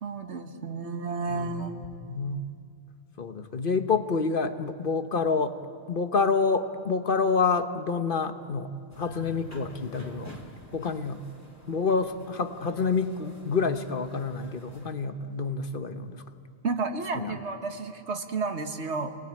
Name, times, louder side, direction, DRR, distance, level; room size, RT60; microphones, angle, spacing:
voice 1, 0.0-1.8 16.6-19.1, right 4 dB, 85° right, 6 dB, 1.8 m, -32 dB
voice 2, 1.3-2.5 3.2-5.6 5.9-8.7 9.0-10.3 10.7-11.2 11.7-16.2 17.1-17.3, left 4 dB, 55° left, 9 dB, 1.2 m, -28 dB
sound 1, 8.9-14.9, left 2 dB, 15° left, 2.7 m, -49 dB
27.0 x 19.5 x 8.8 m, 2.3 s
omnidirectional pair, 1.1 m